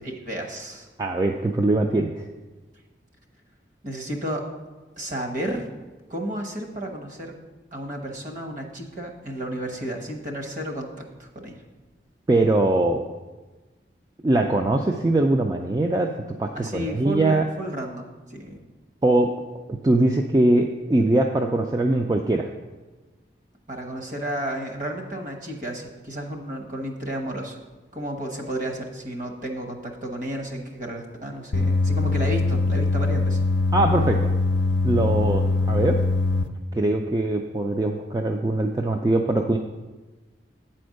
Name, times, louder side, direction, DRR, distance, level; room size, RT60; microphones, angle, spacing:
voice 1, 0.0-0.9 3.8-4.4 5.0-5.7 6.1-7.3 7.7-11.6 16.5-18.6 23.7-27.6 27.9-33.4, right 1 dB, 45° right, 2 dB, 1.1 m, -32 dB
voice 2, 1.0-2.3 12.3-13.1 14.2-17.4 19.0-19.3 19.8-22.5 33.7-34.3 34.8-36.0 36.7-39.6, right 2 dB, 20° right, 2 dB, 0.3 m, -22 dB
sound 1, 31.5-36.4, left 3 dB, 85° left, 0.5 m, -22 dB
8.5 x 4.4 x 6.3 m, 1.2 s
head